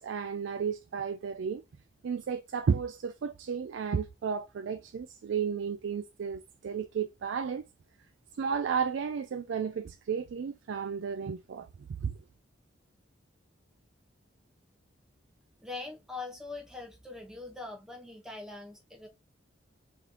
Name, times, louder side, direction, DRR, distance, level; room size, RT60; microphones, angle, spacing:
voice 1, 0.0-1.6 2.0-7.6 8.4-11.7 12.0-12.2, right 6 dB, 75° right, 0.4 m, -33 dB
voice 2, 15.6-19.1, left 3 dB, 5° right, 0.9 m, -42 dB
3.2 x 3.1 x 3.7 m
head